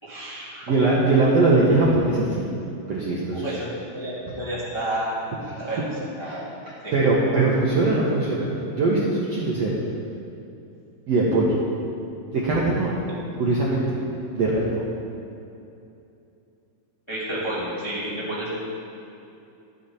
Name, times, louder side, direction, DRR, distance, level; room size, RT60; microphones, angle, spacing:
voice 1, 0.0-0.7 3.3-5.1 5.6-5.8 6.2-6.5 6.8-7.4 17.1-18.5, right 1 dB, 10° left, -9 dB, 1.4 m, -31 dB
voice 2, 0.7-2.4 2.9-3.6 6.2-6.4 6.9-9.7 11.1-11.6 12.3-13.0 13.4-14.0 14.4-14.8, right 2 dB, 85° right, -5 dB, 1.4 m, -21 dB
13.0 x 8.3 x 4.3 m, 2.7 s
omnidirectional pair, 4.7 m